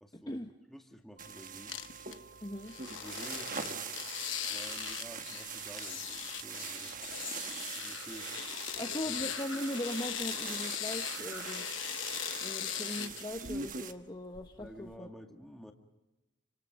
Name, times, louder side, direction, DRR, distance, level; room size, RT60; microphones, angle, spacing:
voice 1, 0.0-0.3 0.7-1.8 2.9-3.9 4.5-7.0 7.5-8.4 8.7-9.1 14.6-15.7, equal, ahead, 3 dB, 1.9 m, -51 dB
sound 1, 1.2-13.9, right 6 dB, 40° right, 1.2 m, -43 dB
sound 2, 1.2-6.6, right 4 dB, 65° right, 1.5 m, -57 dB
sound 3, 1.7-2.1 2.7-13.8 14.3-15.0, left 10 dB, 70° left, 1.1 m, -40 dB
voice 2, 2.4-2.7 8.8-11.7 12.4-15.1, left 1 dB, 20° left, 3 dB, 1.0 m, -39 dB
28.5 x 26.0 x 5.3 m, 1.0 s
head